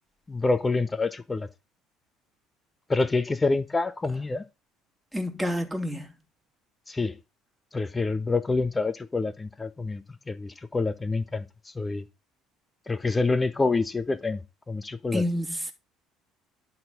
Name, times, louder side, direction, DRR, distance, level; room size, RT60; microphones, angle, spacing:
voice 1, 0.3-1.5 2.9-4.4 6.9-7.2 7.7-11.4 11.7-12.0 12.9-15.2, left 3 dB, 20° left, 1.2 m, -27 dB
voice 2, 5.1-6.1 15.1-15.7, left 1 dB, 5° right, 2.7 m, -28 dB
11.0 x 4.3 x 5.4 m
hypercardioid pair, 60°, 0 cm